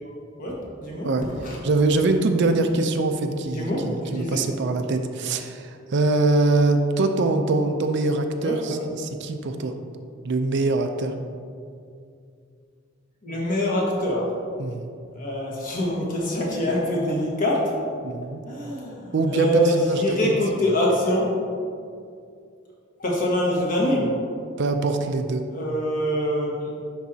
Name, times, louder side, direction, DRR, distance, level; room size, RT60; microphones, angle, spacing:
voice 1, 0.4-1.1 1.4-1.6 3.5-4.4 8.4-8.8 13.2-14.3 15.1-17.7 18.5-21.3 23.0-24.2 25.5-26.7, equal, 45° left, -4 dB, 1.4 m, -24 dB
voice 2, 1.6-9.7 10.2-11.1 14.6-14.9 18.0-18.4 19.1-20.3 24.6-25.4, right 3 dB, 60° right, 6 dB, 0.4 m, -23 dB
10.5 x 4.1 x 2.8 m, 2.4 s
head